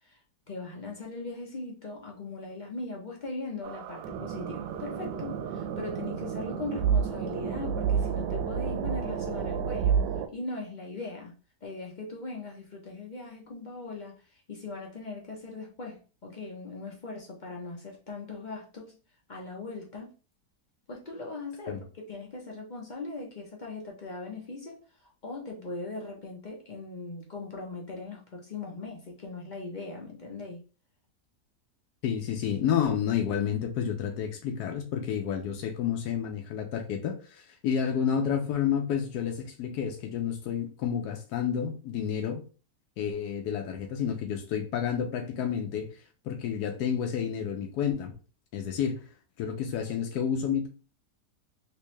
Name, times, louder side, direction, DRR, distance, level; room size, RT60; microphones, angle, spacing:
voice 1, 0.5-10.0 10.3-11.3 11.6-18.9 19.3-20.1 20.9-24.8 25.2-30.6, left 3 dB, 50° left, 0.5 m, -39 dB
sound 1, 3.6-10.3, right 7 dB, 90° right, 1.2 m, -30 dB
voice 2, 32.0-42.4 43.0-48.1 48.5-49.1 49.4-50.7, left 8 dB, 75° left, 1.1 m, -30 dB
3.4 x 2.9 x 3.0 m
omnidirectional pair, 1.8 m